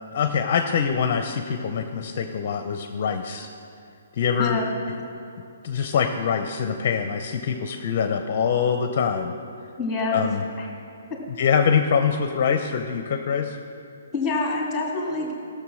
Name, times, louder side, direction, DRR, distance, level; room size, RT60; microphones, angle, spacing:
voice 1, 0.1-3.5 4.1-4.6 5.6-9.3 10.1-10.4 11.4-13.6, left 6 dB, 40° left, 6 dB, 0.6 m, -24 dB
voice 2, 4.3-4.7 9.8-10.2 10.6-10.7 14.1-15.3, left 3 dB, 5° left, -2 dB, 2.2 m, -26 dB
15.5 x 6.8 x 6.3 m, 2.5 s
hypercardioid pair, 170°, 0 cm